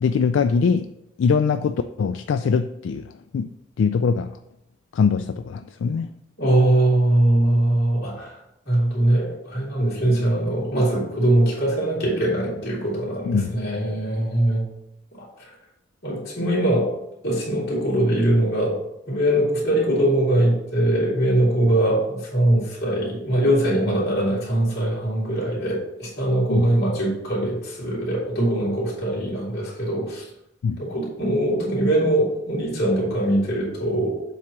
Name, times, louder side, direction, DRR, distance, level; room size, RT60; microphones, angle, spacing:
voice 1, 0.0-0.9 1.2-3.0 3.3-3.5 3.8-4.3 4.9-6.1 13.3-13.6 26.5-26.6 30.6-30.8, left 5 dB, 75° left, 9 dB, 0.3 m, -22 dB
voice 2, 6.4-8.4 8.7-14.7 15.2-15.5 16.0-17.0 17.2-18.8 19.1-30.3 30.8-34.2, right 1 dB, 55° left, -6 dB, 2.7 m, -22 dB
7.8 x 3.0 x 5.9 m, 0.83 s
head